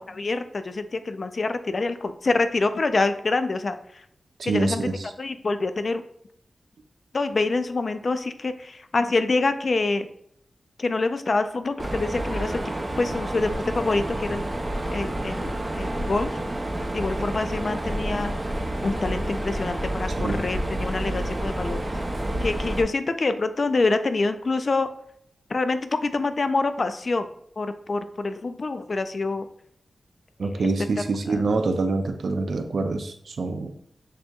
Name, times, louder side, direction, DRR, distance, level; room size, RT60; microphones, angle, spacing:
voice 1, 0.0-3.8 4.4-4.9 5.2-6.0 7.1-10.1 10.8-12.6 13.0-14.4 14.9-16.4 16.9-18.3 18.8-21.8 22.4-24.9 25.5-27.3 27.6-29.5 30.5-30.7 31.3-31.4, left 3 dB, 50° left, 10 dB, 0.3 m, -26 dB
voice 2, 4.4-5.1 20.2-20.4 30.4-33.7, right 3 dB, 70° right, 7 dB, 0.4 m, -26 dB
Mechanisms, 11.8-22.8, right 1 dB, 20° right, 0.5 m, -29 dB
6.5 x 2.8 x 2.3 m, 0.71 s
wide cardioid pair, 105°, 0 cm